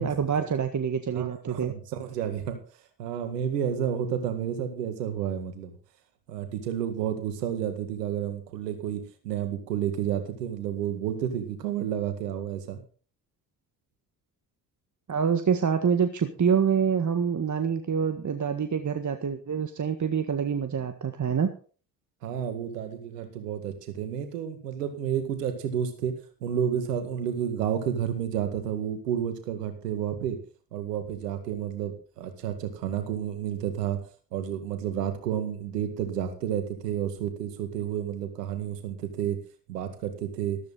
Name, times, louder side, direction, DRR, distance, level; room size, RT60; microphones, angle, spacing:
voice 1, 0.0-1.7 15.1-21.5, right 7 dB, 40° right, 7 dB, 1.7 m, -26 dB
voice 2, 1.1-2.6 3.0-5.8 6.3-12.8 22.2-26.1 26.4-30.4 30.7-34.0 34.3-39.4 39.7-40.6, right 9 dB, 90° right, 8 dB, 2.0 m, -31 dB
13.5 x 13.5 x 4.1 m, 0.39 s
hypercardioid pair, 45°, 47 cm